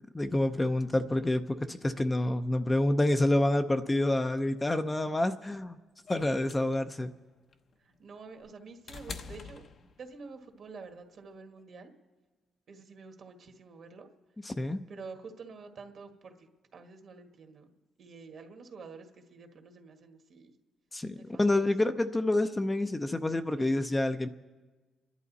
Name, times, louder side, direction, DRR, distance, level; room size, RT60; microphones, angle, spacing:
voice 1, 0.0-5.8 6.1-7.1 14.4-14.8 20.9-24.3, left 1 dB, 15° left, 8 dB, 0.6 m, -28 dB
sound 1, 6.1-10.3 11.6-11.7, left 5 dB, 55° left, 0.9 m, -46 dB
voice 2, 8.0-9.6 10.0-11.9 12.7-14.1 14.9-16.3 16.7-17.7 18.0-20.5 21.1-21.7, right 4 dB, 55° right, 5 dB, 1.7 m, -48 dB
28.5 x 11.0 x 4.1 m, 1.3 s
cardioid pair, 90°, 0 cm